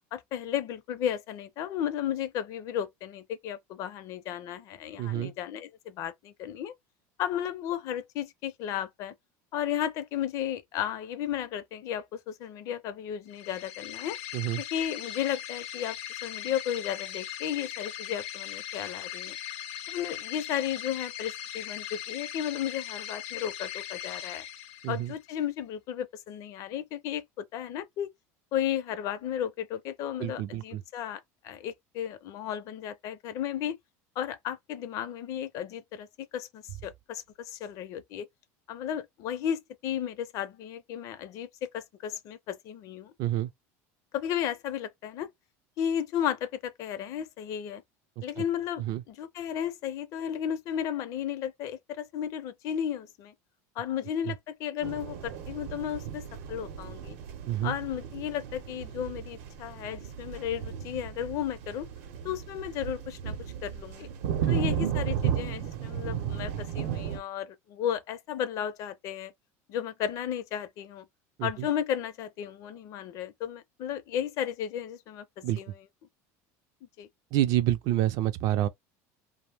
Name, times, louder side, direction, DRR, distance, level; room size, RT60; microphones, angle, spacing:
voice 1, 0.1-6.7 7.2-9.1 9.5-14.2 14.7-16.0 16.2-19.4 19.9-24.4 24.9-27.2 27.5-28.1 28.5-33.8 34.2-36.1 36.3-38.3 38.7-41.5 41.7-43.1 44.1-45.3 45.8-47.8 48.2-53.3 53.8-57.2 57.6-61.9 62.2-63.4 63.6-64.1 64.5-69.3 69.7-71.0 71.4-75.2 75.6-75.7 77.0-77.1, left 10 dB, 50° left, 0.5 m, -34 dB
voice 2, 5.0-5.3 14.3-14.6 24.8-25.1 30.2-30.8 43.2-43.5 48.2-48.4 48.8-49.0 57.5-57.8 64.4-64.6 71.4-71.7 75.4-75.6 77.3-78.7, right 13 dB, 50° right, 0.4 m, -28 dB
sound 1, 13.3-25.2, left 12 dB, 90° left, 0.7 m, -39 dB
sound 2, 54.8-67.2, right 8 dB, 80° right, 0.7 m, -34 dB
2.5 x 2.0 x 3.3 m
cardioid pair, 150°, 7 cm